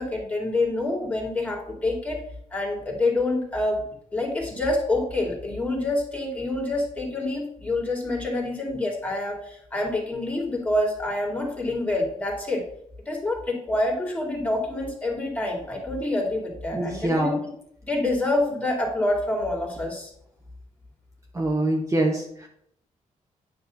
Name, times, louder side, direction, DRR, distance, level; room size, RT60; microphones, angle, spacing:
voice 1, 0.0-2.2 2.5-3.9 4.1-12.6 13.1-17.3 17.8-20.1, left 2 dB, 10° left, -2 dB, 2.4 m, -27 dB
voice 2, 16.7-17.4 21.3-22.5, right 1 dB, 25° right, 0 dB, 1.0 m, -24 dB
9.5 x 3.2 x 6.8 m, 0.71 s
cardioid pair, 120°, 13 cm